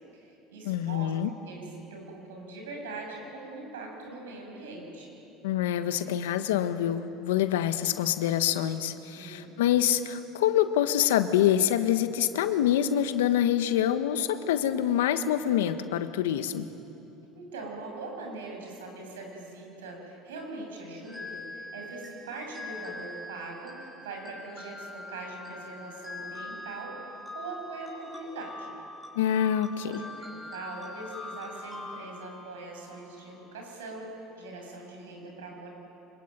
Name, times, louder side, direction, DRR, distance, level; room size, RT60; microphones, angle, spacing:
voice 1, 0.1-1.1 1.4-5.2 9.1-9.5 17.3-27.1 27.3-28.7 29.8-35.7, right 2 dB, 90° right, 1 dB, 7.3 m, -42 dB
voice 2, 0.6-1.3 5.4-16.7 29.1-30.0, left 10 dB, 85° left, 10 dB, 1.3 m, -26 dB
sound 1, 21.0-33.4, left 2 dB, ahead, 5.8 m, -43 dB
25.5 x 22.0 x 9.1 m, 2.9 s
hypercardioid pair, 80°, 0 cm